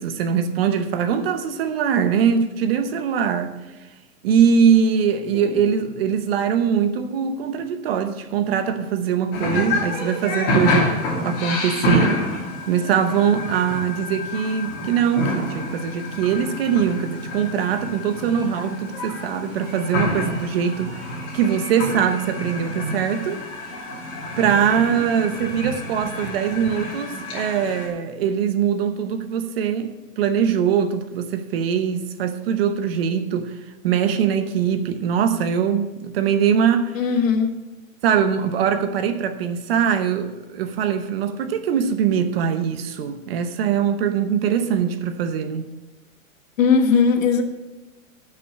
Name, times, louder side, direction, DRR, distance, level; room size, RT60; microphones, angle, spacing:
voice 1, 0.0-3.5 4.2-10.9 11.2-12.2 12.6-21.0 21.3-23.4 24.4-33.5 33.8-37.0 38.0-45.6, right 7 dB, 45° right, 0.9 m, -22 dB
voice 2, 5.3-5.6 36.9-37.5 46.6-47.4, left 5 dB, 65° left, 1.5 m, -18 dB
sound 1, 9.3-27.9, left 1 dB, 30° left, 2.6 m, -27 dB
11.0 x 6.0 x 6.5 m
hypercardioid pair, 160°, 42 cm